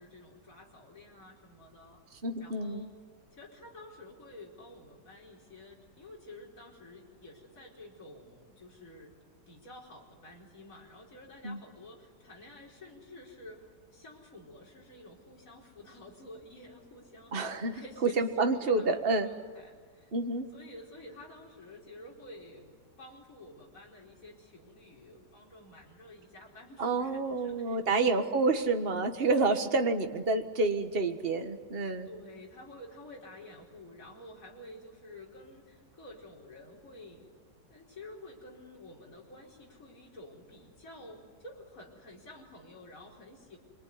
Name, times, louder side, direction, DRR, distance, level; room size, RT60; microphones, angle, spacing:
voice 1, 0.0-2.0 2.4-2.9 3.3-9.1 9.5-13.6 13.9-20.1 20.5-28.0 29.2-29.3 32.1-37.3 37.7-43.6, left 1 dB, 50° left, -3 dB, 5.2 m, -50 dB
voice 2, 2.2-2.9 11.4-11.6 17.3-17.7 18.0-19.3 20.1-20.5 26.8-32.1, right 3 dB, 35° right, 6 dB, 1.8 m, -28 dB
26.5 x 23.5 x 9.6 m, 1.5 s
omnidirectional pair, 1.8 m